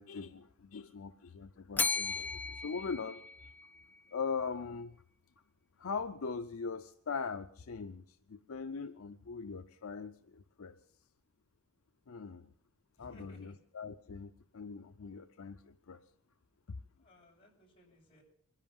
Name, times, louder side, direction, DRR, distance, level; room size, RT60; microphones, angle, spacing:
voice 1, 0.0-3.5 4.1-5.0 5.8-10.8 12.1-12.5 13.0-16.0, left 5 dB, 70° left, 9 dB, 0.6 m, -41 dB
Bell, 1.8-4.0, left 4 dB, 10° left, 0.6 m, -36 dB
voice 2, 13.0-13.5 17.0-18.2, left 1 dB, 25° left, -3 dB, 6.3 m, -59 dB
23.5 x 11.0 x 5.4 m, 0.63 s
head